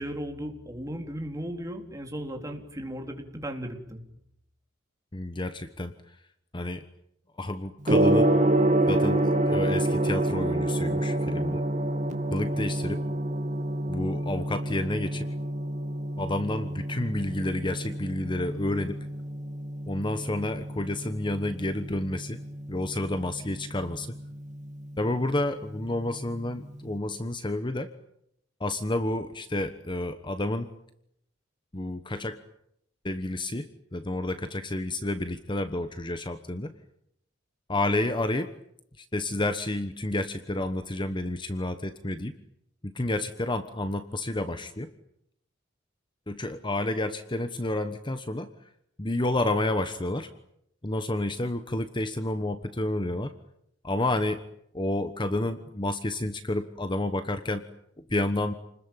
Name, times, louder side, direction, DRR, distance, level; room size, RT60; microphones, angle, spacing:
voice 1, 0.0-4.0, equal, 15° right, 3 dB, 4.0 m, -36 dB
voice 2, 5.1-5.9 6.5-6.8 7.4-8.3 8.9-11.6 12.3-13.0 13.9-15.3 16.2-19.0 19.9-22.4 22.7-24.1 25.0-27.9 28.6-30.7 31.7-32.4 33.0-36.7 37.7-38.5 39.0-42.3 42.8-44.9 46.3-48.5 49.0-50.3 50.8-53.3 53.8-54.4 54.7-57.6 58.1-58.5, left 1 dB, 25° left, 10 dB, 1.2 m, -30 dB
Gong, 7.8-26.9, right 1 dB, 40° right, 2.7 m, -28 dB
29.5 x 21.0 x 9.1 m, 0.78 s
head